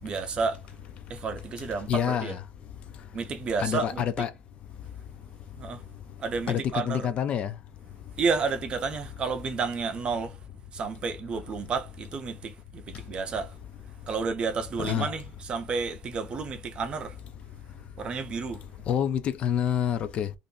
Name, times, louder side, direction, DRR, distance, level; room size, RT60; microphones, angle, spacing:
voice 1, 0.0-0.6 1.1-2.4 3.1-4.0 5.5-5.8 6.2-7.1 8.2-10.4 10.7-13.6 14.1-17.2 18.0-18.6, right 5 dB, 30° right, 0.6 m, -31 dB
voice 2, 1.9-2.4 3.6-4.3 6.5-7.5 14.8-15.1 18.9-20.3, left 9 dB, 40° left, 0.4 m, -27 dB
2.5 x 2.5 x 3.8 m
cardioid pair, 165°, 3 cm